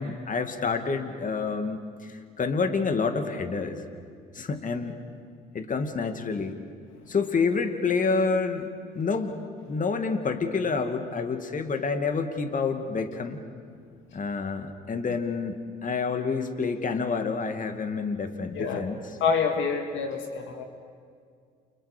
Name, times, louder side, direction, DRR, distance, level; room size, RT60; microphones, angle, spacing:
voice 1, 0.0-3.8 4.3-5.0 5.5-6.6 7.1-8.7 8.9-9.4 9.7-13.4 14.1-19.0, left 4 dB, 40° left, 7 dB, 2.3 m, -28 dB
voice 2, 18.5-18.9 19.2-20.6, left 5 dB, 65° left, 5 dB, 2.0 m, -27 dB
30.0 x 29.0 x 5.2 m, 2.2 s
hypercardioid pair, 60°, 21 cm